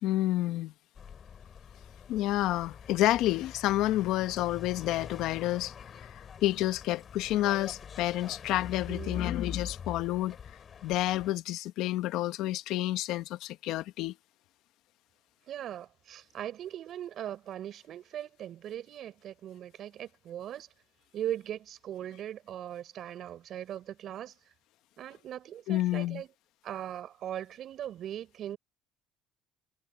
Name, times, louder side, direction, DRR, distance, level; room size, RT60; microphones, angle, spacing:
voice 1, 0.0-0.7 2.1-5.7 6.0-10.4 10.8-14.1 25.7-26.2, left 15 dB, 75° left, 1.2 m, -29 dB
sound 1, 0.9-11.3, left 7 dB, 40° left, 7.9 m, -44 dB
voice 2, 8.9-9.4 15.5-20.7 21.1-24.3 25.0-26.3 26.6-28.6, right 11 dB, 60° right, 5.7 m, -39 dB
supercardioid pair, 95°, 0 cm